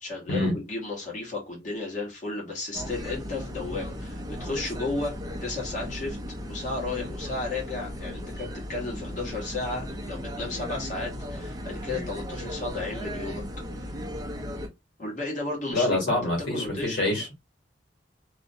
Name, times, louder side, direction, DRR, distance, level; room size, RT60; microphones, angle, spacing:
voice 1, 0.0-5.1 5.4-6.2 6.5-13.4 15.0-16.2 16.5-17.3, left 3 dB, 45° left, 1.1 m, -33 dB
sound 1, 2.7-14.7, equal, 20° right, 0.5 m, -36 dB
voice 2, 15.7-17.3, left 1 dB, 85° left, 1.2 m, -26 dB
2.4 x 2.1 x 2.6 m
head